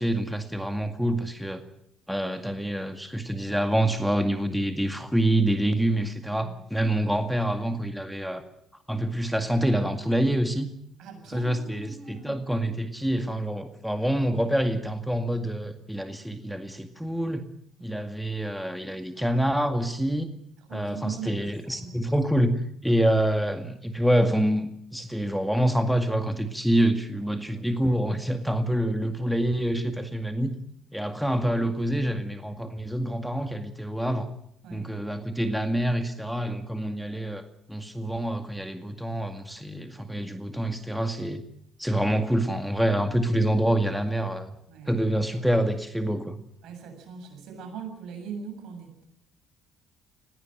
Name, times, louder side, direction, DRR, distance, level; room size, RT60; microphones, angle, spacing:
voice 1, 0.0-1.6 2.1-8.4 8.9-10.7 11.3-17.4 17.8-20.3 20.7-30.5 30.9-34.3 34.7-37.4 37.7-41.4 41.8-44.5 44.9-46.4, right 1 dB, ahead, 7 dB, 2.1 m, -26 dB
voice 2, 11.0-12.4 17.8-17.9 20.6-21.9 34.6-34.9 44.7-45.1 46.6-49.0, right 6 dB, 70° right, 4 dB, 7.4 m, -41 dB
20.0 x 17.0 x 9.1 m, 0.73 s
hypercardioid pair, 60°, 0 cm